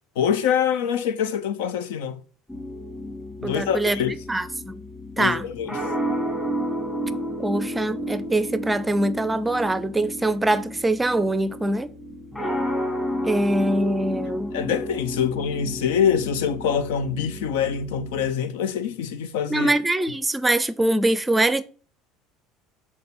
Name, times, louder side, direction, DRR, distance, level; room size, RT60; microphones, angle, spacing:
voice 1, 0.2-2.2 3.4-4.1 5.2-5.8 14.5-19.7, left 8 dB, 80° left, 0.6 m, -25 dB
sound 1, 2.5-18.3, equal, 15° left, 2.2 m, -32 dB
voice 2, 3.4-4.0 4.3-4.8 5.2-5.5 7.4-11.9 13.3-14.5 19.5-21.6, right 1 dB, 10° right, 0.5 m, -23 dB
6.8 x 4.2 x 4.3 m
hypercardioid pair, 85°, 0 cm